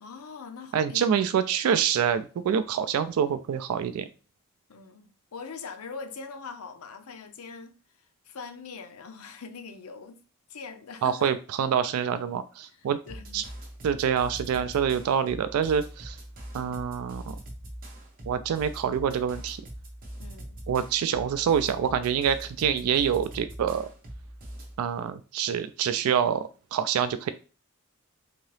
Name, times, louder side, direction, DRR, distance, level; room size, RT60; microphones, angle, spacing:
voice 1, 0.0-1.1 4.7-7.7 8.3-10.2 10.5-11.3 12.7-12.8 13.1-13.4 20.2-20.5, left 5 dB, 90° left, 0.6 m, -42 dB
voice 2, 0.7-4.1 11.0-13.0 13.3-13.4 13.8-16.2 16.5-17.3 18.3-19.6 20.7-23.9 24.8-27.3, right 8 dB, 80° right, 0.3 m, -26 dB
sound 1, 13.1-24.8, right 1 dB, 40° right, 0.9 m, -42 dB
3.8 x 2.7 x 3.2 m
head